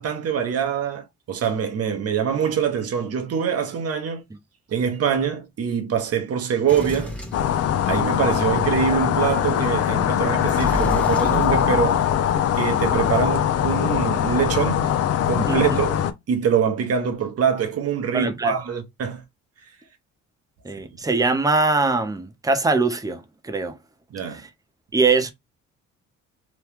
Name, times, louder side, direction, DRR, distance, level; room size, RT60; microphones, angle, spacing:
voice 1, 0.0-4.2 4.7-7.1 7.8-12.0 12.5-14.9 15.3-16.0 16.3-19.2 24.1-24.4, right 7 dB, 55° right, 0.9 m, -24 dB
Sliding door, 6.7-8.2 10.4-12.4, left 1 dB, 5° left, 1.1 m, -31 dB
sound 1, 7.3-16.1, left 10 dB, 55° left, 0.5 m, -22 dB
voice 2, 15.5-15.8 18.1-18.6 20.6-23.8 24.2-24.5 24.9-25.3, right 3 dB, 10° right, 0.6 m, -22 dB
3.0 x 2.2 x 3.4 m
cardioid pair, 90°, 30 cm